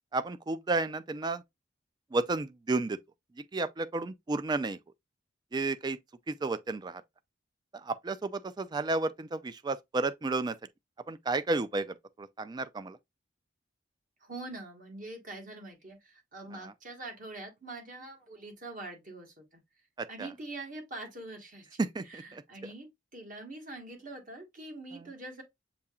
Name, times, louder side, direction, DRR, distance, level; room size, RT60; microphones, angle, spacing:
voice 1, 0.1-1.4 2.1-3.0 3.4-4.8 5.5-6.0 6.3-7.0 7.7-10.6 11.1-13.0 16.5-16.7 20.0-20.3 21.8-22.4 24.9-25.1, right 3 dB, 25° right, 0.3 m, -32 dB
voice 2, 14.2-19.6 20.1-21.8 22.1-25.4, right 2 dB, 45° right, 1.4 m, -44 dB
6.8 x 2.8 x 2.3 m
head